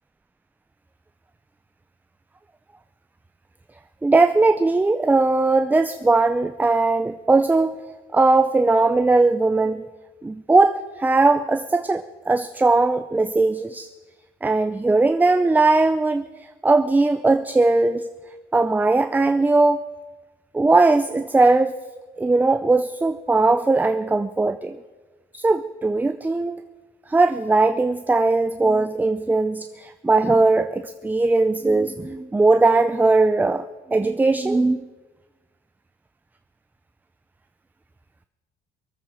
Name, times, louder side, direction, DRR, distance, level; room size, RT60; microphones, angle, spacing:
voice 1, 4.0-7.8 8.1-9.8 10.2-13.9 14.4-16.3 16.6-18.1 18.5-19.8 20.5-21.7 22.2-24.8 25.3-26.6 27.1-33.6 33.9-34.8, right 3 dB, 10° right, 10 dB, 0.5 m, -19 dB
23.0 x 8.8 x 6.3 m, 1.3 s
cardioid pair, 110°, 17 cm